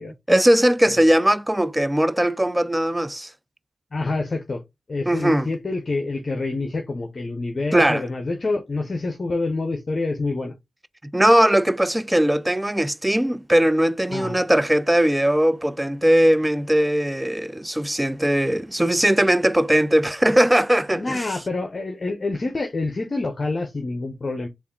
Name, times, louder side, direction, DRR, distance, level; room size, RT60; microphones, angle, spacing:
voice 1, 0.3-3.3 5.1-5.5 7.7-8.0 11.1-21.2, right 1 dB, 10° right, 0.4 m, -19 dB
voice 2, 3.9-4.6 4.9-10.6 14.1-14.4 20.9-24.5, left 3 dB, 45° left, 0.7 m, -27 dB
3.4 x 2.5 x 3.7 m
cardioid pair, 45°, 0 cm